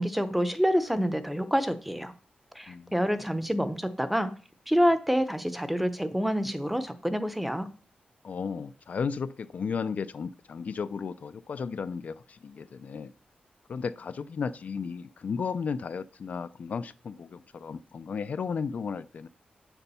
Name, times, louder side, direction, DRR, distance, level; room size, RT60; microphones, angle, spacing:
voice 1, 0.0-2.1 2.5-4.3 4.7-7.7, equal, 5° right, 11 dB, 0.7 m, -27 dB
voice 2, 8.2-13.1 13.7-19.3, left 5 dB, 55° left, 12 dB, 0.4 m, -34 dB
7.9 x 6.8 x 5.5 m, 0.40 s
wide cardioid pair, 155°, 3 cm